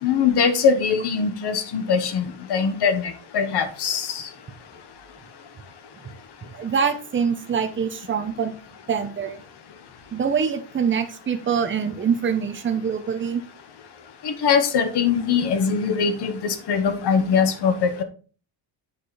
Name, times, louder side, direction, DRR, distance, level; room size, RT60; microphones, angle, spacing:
voice 1, 0.0-4.3 14.2-18.0, left 6 dB, 50° left, 9 dB, 1.2 m, -22 dB
voice 2, 6.4-8.6 8.9-9.4 10.1-13.4, right 6 dB, 25° right, 7 dB, 0.8 m, -24 dB
8.4 x 5.0 x 4.2 m, 0.38 s
cardioid pair, 170°, 50 cm